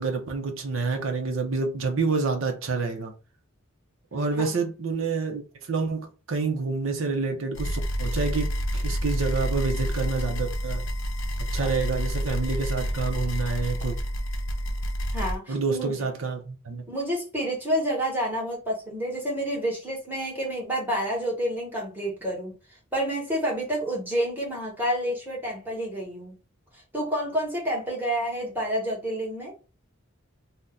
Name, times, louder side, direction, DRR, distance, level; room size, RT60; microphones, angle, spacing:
voice 1, 0.0-3.1 4.1-10.9 11.5-14.0 15.5-16.8, right 4 dB, 70° right, 0.7 m, -28 dB
voice 2, 4.3-4.6 15.1-16.1 16.9-22.5 22.9-26.3 26.9-29.5, equal, 10° right, 1.3 m, -29 dB
sound 1, 7.5-15.4, equal, 70° left, 0.6 m, -28 dB
2.7 x 2.1 x 3.6 m
head